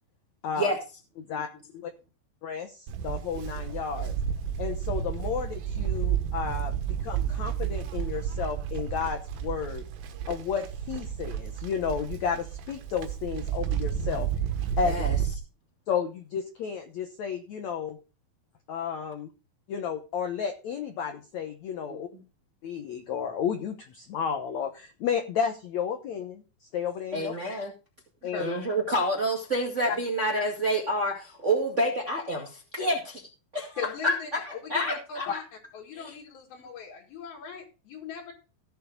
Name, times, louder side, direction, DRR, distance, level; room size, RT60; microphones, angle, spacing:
voice 1, 2.4-4.1 4.6-9.8 10.3-14.3 14.8-15.0 15.9-18.0 18.7-19.3 19.7-22.1 22.6-27.3 28.2-28.4, left 7 dB, 90° left, 6 dB, 1.5 m, -32 dB
Livestock farm animals working animals, 2.9-15.4, right 9 dB, 85° right, 3.4 m, -31 dB
voice 2, 14.8-15.1 21.9-22.2 27.1-27.7 28.4-33.2 33.5-35.3 35.9-36.1, right 1 dB, 30° right, -1 dB, 1.3 m, -28 dB
voice 3, 28.2-28.6 33.8-35.4 35.7-38.3, left 6 dB, 65° left, -3 dB, 3.8 m, -39 dB
16.5 x 7.1 x 3.8 m, 0.32 s
omnidirectional pair, 4.8 m